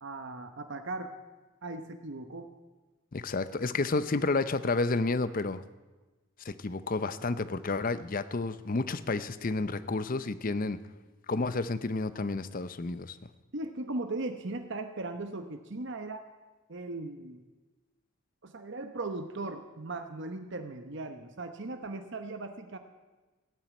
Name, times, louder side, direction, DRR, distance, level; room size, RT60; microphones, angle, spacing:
voice 1, 0.0-1.1 1.6-2.5 13.5-16.2 16.7-17.4 18.4-22.8, right 2 dB, 60° right, 7 dB, 0.9 m, -38 dB
voice 2, 3.1-5.6 6.4-10.8 11.3-13.2, left 3 dB, 40° left, 14 dB, 0.6 m, -30 dB
16.0 x 9.2 x 9.1 m, 1.2 s
head